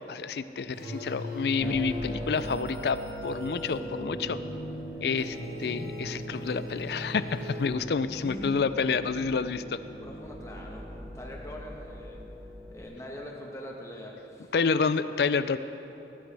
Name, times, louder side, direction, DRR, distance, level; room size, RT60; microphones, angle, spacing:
voice 1, 0.1-4.4 5.0-9.8 14.5-15.6, left 5 dB, 65° left, 13 dB, 0.4 m, -29 dB
sound 1, 0.7-8.2, equal, 60° right, 1.8 m, -40 dB
sound 2, 1.6-12.8, right 1 dB, 15° right, 1.0 m, -42 dB
sound 3, 3.6-11.3, left 1 dB, 85° right, 1.4 m, -48 dB
voice 2, 8.2-8.7 10.0-10.8 11.1-12.2 12.7-14.5, left 1 dB, 15° left, 0 dB, 1.2 m, -42 dB
18.5 x 10.0 x 3.4 m, 3.0 s
head